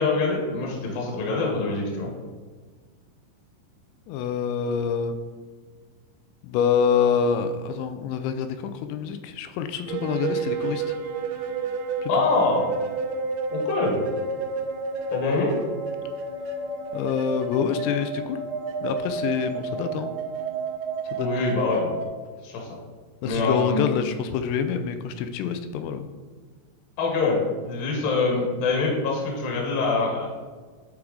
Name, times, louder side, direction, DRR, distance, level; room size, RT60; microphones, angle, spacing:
voice 1, 0.0-2.1 12.1-12.7 13.5-14.0 15.1-15.5 21.2-21.8 22.4-22.7 23.2-24.0 27.0-27.4 27.7-30.3, left 3 dB, 65° left, -1 dB, 2.6 m, -24 dB
voice 2, 4.1-5.2 6.4-10.8 12.0-12.1 16.9-18.4 18.8-20.1 21.1-21.5 21.8-21.9 23.2-26.1, left 7 dB, 85° left, 9 dB, 2.7 m, -26 dB
sound 1, 9.9-22.1, right 4 dB, 75° right, 2.3 m, -30 dB
9.6 x 4.6 x 3.7 m, 1.4 s
omnidirectional pair, 5.3 m